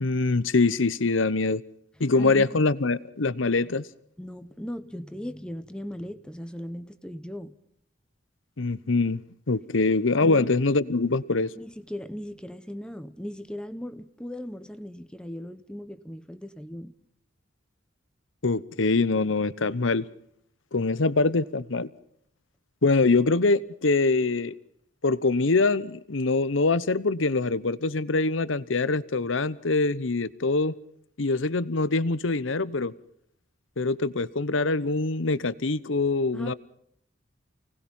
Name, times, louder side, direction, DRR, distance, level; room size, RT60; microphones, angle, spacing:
voice 1, 0.0-1.6 2.0-3.9 8.6-9.2 9.5-11.5 18.4-20.1 20.7-21.9 22.8-24.5 25.0-30.7 31.2-32.9 33.8-36.5, left 3 dB, 90° left, 0.9 m, -24 dB
voice 2, 2.1-2.6 4.2-7.6 10.2-10.5 11.6-16.9 36.3-36.5, equal, 5° left, 1.0 m, -38 dB
29.5 x 19.0 x 5.5 m
head